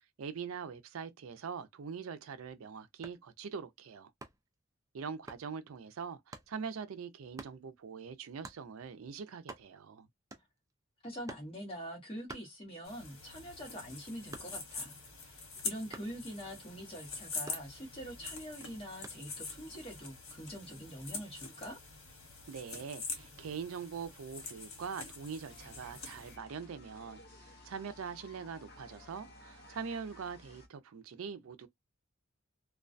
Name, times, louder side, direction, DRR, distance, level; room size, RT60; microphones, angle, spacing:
voice 1, 0.2-4.1 4.9-10.1 22.5-31.7, right 6 dB, 80° right, 0.4 m, -43 dB
sound 1, 2.9-3.3 4.2-4.5 5.3-5.5 6.3-6.5 7.4-7.6 8.4-8.7 9.1-9.2 9.4-9.9 10.3-10.7 11.3-11.6 12.3-13.0 13.4-14.8 15.9-16.2 17.5-18.1 19.0-19.3, right 3 dB, 15° right, 0.3 m, -49 dB
voice 2, 11.0-15.0 15.3-21.8, equal, 25° left, 1.0 m, -44 dB
sound 2, 12.8-26.4, left 4 dB, 90° left, 1.2 m, -45 dB
sound 3, 25.5-30.7, left 1 dB, 50° left, 0.6 m, -56 dB
2.3 x 2.2 x 2.5 m
head